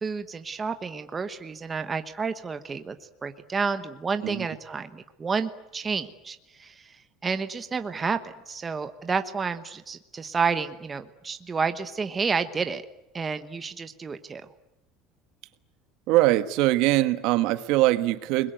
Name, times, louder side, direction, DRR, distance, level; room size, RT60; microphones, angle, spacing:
voice 1, 0.0-3.0 3.2-12.8 13.1-14.5, right 5 dB, 15° right, 9 dB, 1.1 m, -30 dB
voice 2, 16.1-18.5, right 16 dB, 60° right, 12 dB, 1.4 m, -22 dB
29.5 x 21.5 x 9.2 m, 0.89 s
cardioid pair, 170°, 0 cm